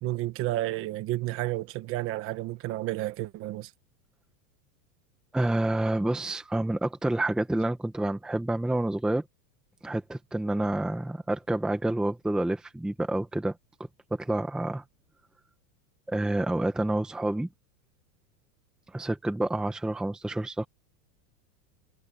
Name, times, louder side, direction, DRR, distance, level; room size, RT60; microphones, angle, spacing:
voice 1, 0.0-3.7, right 16 dB, 25° right, 1.2 m, -31 dB
voice 2, 5.3-9.2 9.8-13.5 14.1-14.8 16.1-17.5 18.9-20.7, right 1 dB, ahead, 1.0 m, -28 dB
supercardioid pair, 165°, 48 cm